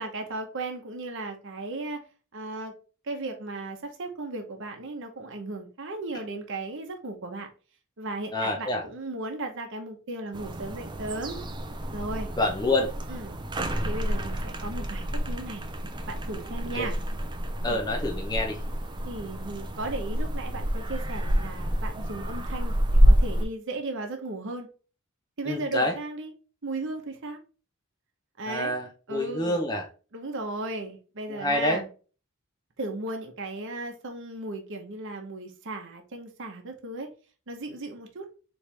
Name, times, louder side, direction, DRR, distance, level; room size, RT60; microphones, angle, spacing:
voice 1, 0.0-2.0 2.3-2.7 3.0-7.5 8.0-11.4 11.9-12.3 13.1-13.4 13.8-15.7 16.1-17.0 17.7-17.9 19.0-24.7 25.4-26.3 26.6-27.4 28.4-28.7 29.1-29.6 30.1-31.9 32.8-37.1 37.5-38.3, right 2 dB, 60° right, 0.9 m, -36 dB
voice 2, 8.3-8.8 12.4-12.9 16.7-16.9 17.6-18.6 25.5-25.9 28.5-28.9 29.1-29.8 31.4-31.8, left 1 dB, 20° left, 0.7 m, -27 dB
sound 1, 10.3-23.4, equal, 20° right, 0.6 m, -28 dB
4.5 x 3.2 x 3.3 m
head